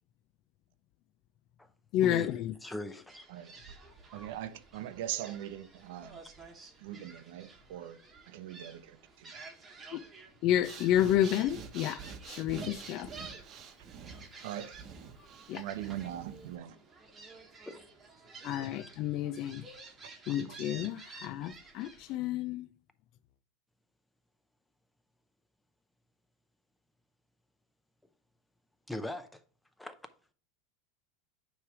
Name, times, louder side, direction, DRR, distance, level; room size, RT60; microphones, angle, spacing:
voice 1, 1.9-2.5 9.9-10.0 10.4-12.0 12.3-13.1 15.5-15.6 18.4-19.6 20.3-22.7, left 12 dB, 50° left, 0.5 m, -30 dB
voice 2, 2.6-3.2 17.7-17.8 20.3-20.4 28.9-29.4 29.8-29.9, left 1 dB, 5° left, 0.6 m, -39 dB
Gull seagull, 3.1-22.2, right 3 dB, 20° right, 1.3 m, -52 dB
voice 3, 4.1-6.2 6.8-8.0 8.3-9.3 14.4-14.8 15.6-16.7, right 12 dB, 70° right, 0.7 m, -41 dB
Breathing, 10.5-16.6, right 6 dB, 35° right, 1.0 m, -47 dB
9.0 x 3.3 x 4.8 m
supercardioid pair, 145°, 0 cm